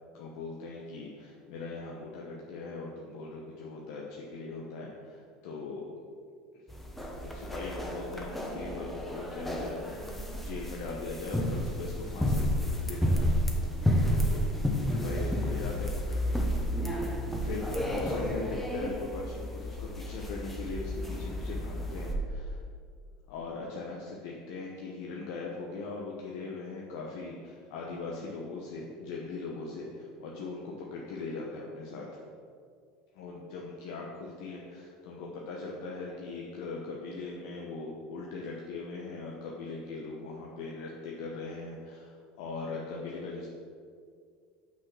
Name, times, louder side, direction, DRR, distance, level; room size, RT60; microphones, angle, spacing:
voice 1, 0.1-5.9 7.2-13.3 14.2-14.4 14.9-16.5 16.8-22.6 23.3-32.2 33.1-43.5, left 3 dB, 75° left, -2 dB, 1.1 m, -40 dB
sound 1, 6.7-22.1, equal, 5° left, 1.1 m, -31 dB
6.2 x 6.1 x 6.1 m, 2.2 s
supercardioid pair, 120°, 3 cm